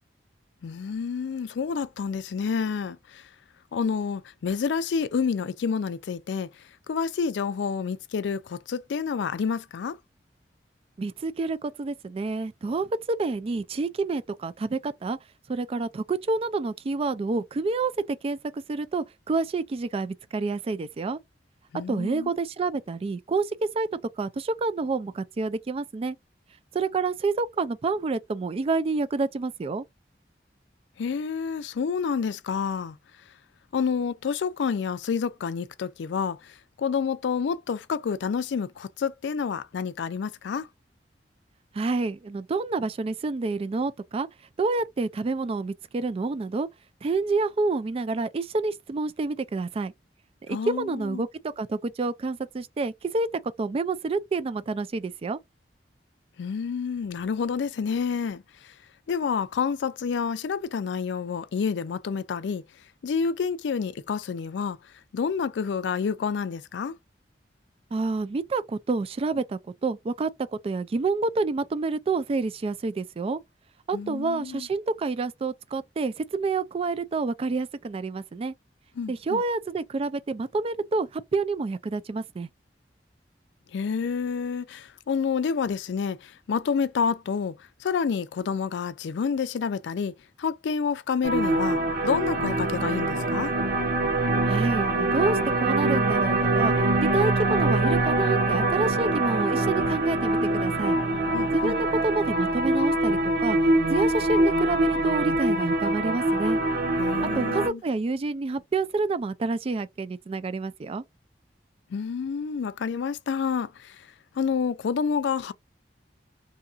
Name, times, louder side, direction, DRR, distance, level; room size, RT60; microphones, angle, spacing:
voice 1, 0.6-3.3 3.7-6.5 6.9-10.0 21.7-22.3 31.0-33.0 33.7-40.7 50.5-51.2 56.4-58.7 59.1-62.6 63.0-64.8 65.1-67.0 73.9-74.7 79.0-79.4 83.7-90.1 90.4-93.5 101.3-101.8 107.0-107.8 111.9-114.1 114.4-115.5, left 6 dB, 90° left, 0.4 m, -29 dB
voice 2, 11.0-15.2 15.5-21.2 21.9-23.9 24.2-26.2 26.7-29.8 41.7-44.3 44.6-46.7 47.0-49.9 50.5-53.3 53.6-55.4 67.9-73.4 73.9-78.5 79.1-82.5 94.5-96.7 97.0-101.0 101.5-103.6 103.9-106.6 107.4-111.0, right 3 dB, 35° right, 0.3 m, -28 dB
sound 1, 91.2-107.7, right 2 dB, 60° right, 0.8 m, -24 dB
2.8 x 2.3 x 2.5 m
head